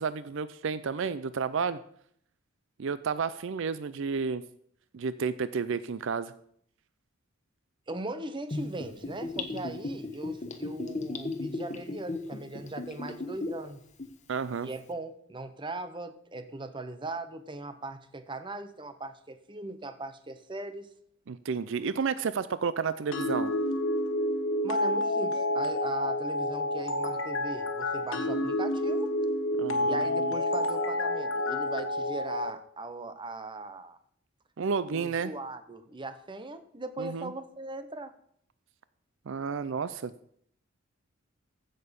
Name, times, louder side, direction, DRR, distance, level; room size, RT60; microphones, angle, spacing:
voice 1, 0.0-1.8 2.8-4.4 4.9-6.3 14.3-14.7 21.3-23.5 29.6-30.3 34.6-35.3 37.0-37.3 39.3-40.1, right 5 dB, 65° right, 15 dB, 0.5 m, -31 dB
voice 2, 7.9-13.8 14.6-20.9 24.6-29.1 29.7-34.0 34.9-38.1, right 2 dB, 25° right, 10 dB, 0.9 m, -39 dB
Gurgling / Bathtub (filling or washing), 8.5-13.7 14.0-14.1, left 2 dB, 35° left, 1.2 m, -35 dB
sound 1, 23.1-32.5, left 1 dB, 65° left, 1.4 m, -29 dB
15.0 x 6.7 x 5.2 m, 0.66 s
head